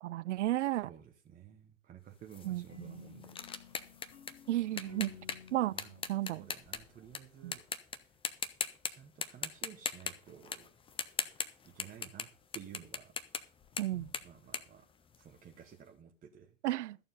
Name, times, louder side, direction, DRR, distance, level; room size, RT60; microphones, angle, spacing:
voice 1, 0.0-0.9 2.4-3.0 4.5-5.1 5.5-5.7 6.1-6.4 7.4-7.6 13.8-14.1 16.6-17.0, right 15 dB, 60° right, 0.5 m, -33 dB
voice 2, 0.8-3.4 3.7-3.8 5.7-7.6 8.0-8.1 8.9-10.7 11.6-13.1 14.2-14.9 15.2-16.5, right 9 dB, 20° right, 1.0 m, -53 dB
sound 1, 2.3-7.2 7.5-8.0 8.2-8.9 9.2-15.5, left 6 dB, 15° left, 0.7 m, -39 dB
sound 2, 2.7-7.6, left 8 dB, 75° left, 2.6 m, -55 dB
13.5 x 7.0 x 5.4 m
figure-of-eight pair, 95°, 40 cm